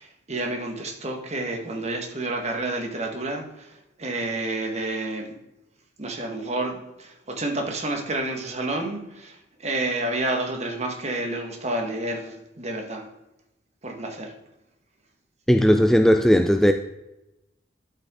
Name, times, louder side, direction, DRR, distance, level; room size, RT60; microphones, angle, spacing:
voice 1, 0.0-5.4 6.0-13.0 13.8-14.3, right 2 dB, 40° right, 1.4 m, -30 dB
voice 2, 15.5-16.7, equal, ahead, 0.3 m, -17 dB
11.5 x 5.8 x 3.7 m
head